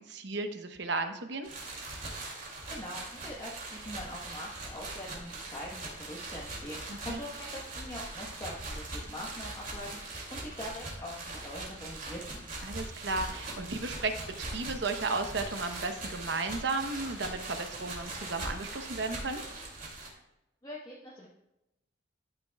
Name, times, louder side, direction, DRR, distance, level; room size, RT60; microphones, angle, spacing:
voice 1, 0.1-1.5 6.9-7.2 12.6-14.1 14.4-19.4, right 3 dB, 60° right, 7 dB, 0.9 m, -34 dB
sound 1, 1.4-20.1, right 2 dB, 45° right, 2.5 m, -41 dB
voice 2, 2.7-12.4 20.6-21.3, left 1 dB, 20° left, -5 dB, 1.1 m, -43 dB
13.0 x 9.0 x 2.3 m, 0.92 s
head